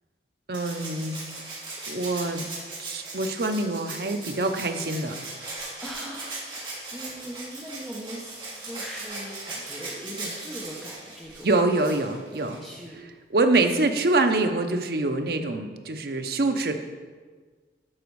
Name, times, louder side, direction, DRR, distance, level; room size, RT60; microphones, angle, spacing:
Rattle (instrument), 0.5-12.8 14.2-14.3, right 2 dB, 30° right, 3.1 m, -38 dB
voice 1, 0.5-1.2 1.9-2.4 2.8-5.2 11.4-12.6 13.3-16.8, right 2 dB, 60° right, 6 dB, 0.7 m, -25 dB
voice 2, 5.8-11.5 12.6-13.0, equal, 5° left, -4 dB, 1.0 m, -40 dB
12.0 x 5.1 x 4.7 m, 1.5 s
head